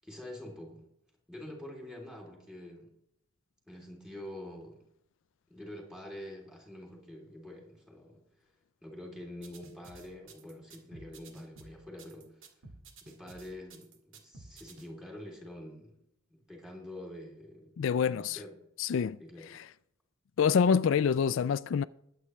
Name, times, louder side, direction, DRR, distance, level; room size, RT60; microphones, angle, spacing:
voice 1, 0.0-0.8 1.3-2.9 3.7-4.8 5.5-8.2 8.8-12.5 13.0-15.9 16.3-17.7 18.0-18.5 19.2-19.5, left 1 dB, 5° right, 3.2 m, -46 dB
sound 1, 9.4-14.9, right 3 dB, 75° right, 2.0 m, -52 dB
voice 2, 17.8-18.4 18.8-19.2 19.5-19.7 20.4-21.8, left 6 dB, 70° left, 0.3 m, -26 dB
21.0 x 8.5 x 3.2 m
head